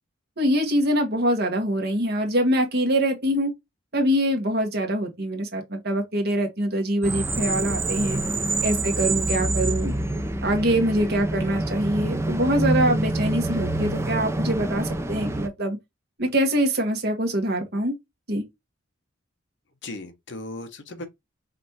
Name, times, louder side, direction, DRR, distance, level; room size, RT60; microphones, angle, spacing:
voice 1, 0.4-3.5 3.9-8.2 8.6-9.9 10.4-15.8 16.2-17.9 18.3-18.4, right 1 dB, 55° right, 1.5 m, -24 dB
sound 1, 7.0-15.5, right 2 dB, 15° right, 0.5 m, -26 dB
voice 2, 8.1-8.5 19.8-21.1, left 2 dB, 60° left, 1.0 m, -38 dB
5.1 x 3.2 x 2.8 m
head